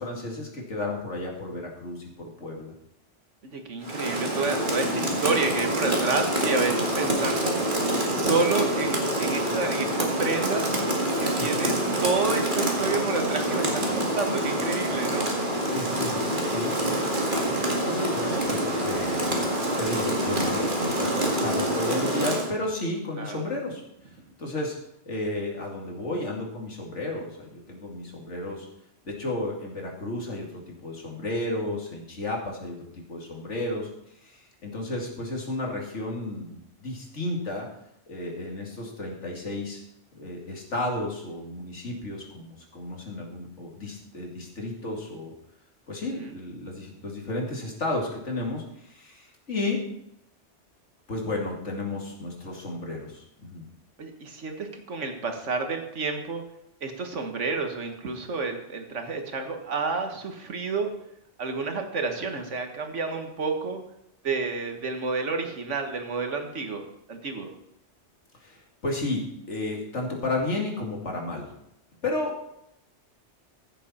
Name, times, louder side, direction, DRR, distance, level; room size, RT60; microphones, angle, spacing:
voice 1, 0.0-2.7 11.4-11.8 15.7-17.4 17.6-19.5 19.8-24.8 25.1-28.7 29.0-37.7 38.1-39.8 40.1-45.3 45.9-49.8 51.1-53.6 68.3-69.2 69.5-71.5 72.0-72.4, left 2 dB, 80° left, 0 dB, 2.7 m, -33 dB
voice 2, 3.4-7.7 8.1-10.7 11.2-11.7 12.0-15.3 23.2-23.4 46.1-46.3 54.0-56.4 56.8-60.9 61.4-63.8 64.2-66.8 67.1-67.5, right 4 dB, 90° right, 5 dB, 1.7 m, -29 dB
Rain, 3.8-22.5, right 1 dB, 45° right, 2.2 m, -26 dB
15.0 x 7.4 x 4.3 m, 0.81 s
omnidirectional pair, 1.2 m